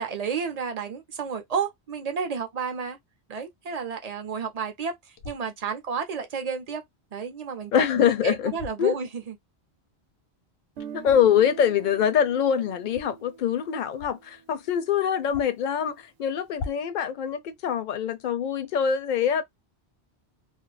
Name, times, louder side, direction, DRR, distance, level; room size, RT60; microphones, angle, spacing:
voice 1, 0.0-3.0 3.3-6.8 7.1-9.3, right 6 dB, 45° right, 0.6 m, -31 dB
sound 1, 5.2-5.5 8.5-8.8 11.0-11.4 12.8-13.1 13.9-14.3 14.6-14.7 15.2-15.7 16.5-17.0, left 5 dB, 85° left, 0.9 m, -40 dB
voice 2, 7.7-8.5 8.8-8.9 10.9-19.4, left 8 dB, 55° left, 0.6 m, -24 dB
Guitar, 10.8-14.7, right 6 dB, 90° right, 0.9 m, -43 dB
2.4 x 2.1 x 3.1 m
omnidirectional pair, 1.1 m